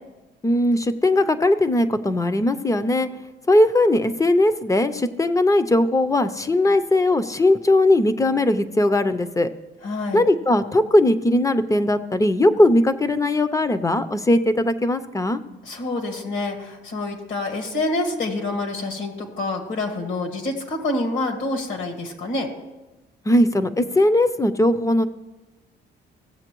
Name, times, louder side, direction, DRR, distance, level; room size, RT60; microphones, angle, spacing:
voice 1, 0.4-3.1 3.5-9.5 10.1-15.4 23.3-25.1, left 1 dB, 15° left, 11 dB, 0.5 m, -19 dB
voice 2, 9.8-10.3 15.6-22.5, left 2 dB, 70° left, 3 dB, 1.9 m, -27 dB
16.0 x 7.4 x 3.0 m, 1.1 s
cardioid pair, 90°, 20 cm